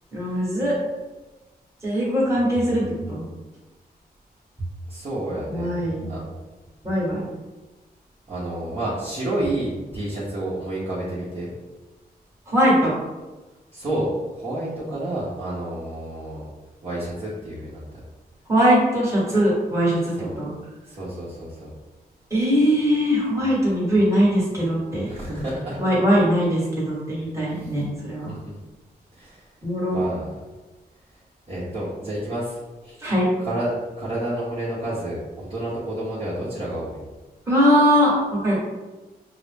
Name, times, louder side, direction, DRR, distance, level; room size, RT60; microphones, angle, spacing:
voice 1, 0.1-0.8 1.8-3.2 5.5-6.1 6.8-7.2 12.5-12.9 18.5-20.5 22.3-25.1 25.8-28.3 29.6-30.0 33.0-33.2 37.5-38.6, equal, 15° right, -7 dB, 1.5 m, -21 dB
voice 2, 4.9-5.7 6.1-6.2 8.3-11.5 13.7-16.5 16.8-17.8 20.2-20.3 20.9-21.7 25.1-25.8 27.6-27.7 28.4-28.5 29.2-29.4 29.9-30.3 31.5-33.0 33.4-33.7 34.0-37.0, right 1 dB, 35° right, -10 dB, 1.1 m, -29 dB
5.9 x 2.0 x 3.4 m, 1.2 s
wide cardioid pair, 155°, 17 cm